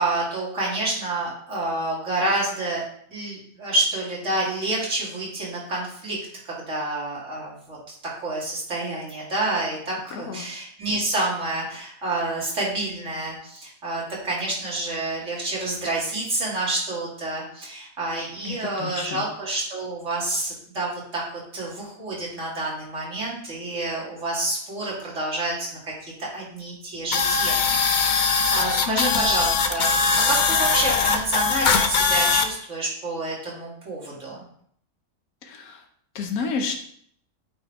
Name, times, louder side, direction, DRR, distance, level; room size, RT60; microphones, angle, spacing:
voice 1, 0.0-2.8 3.1-6.2 6.4-25.7 26.0-34.4, right 2 dB, 60° right, -5 dB, 2.9 m, -28 dB
voice 2, 10.1-10.5 18.4-19.3 28.9-29.3 35.4-35.8 36.1-36.7, left 5 dB, 85° left, 4 dB, 1.3 m, -30 dB
sound 1, 27.1-32.5, left 5 dB, 45° left, 0.6 m, -21 dB
8.6 x 4.7 x 4.6 m, 0.64 s
omnidirectional pair, 1.5 m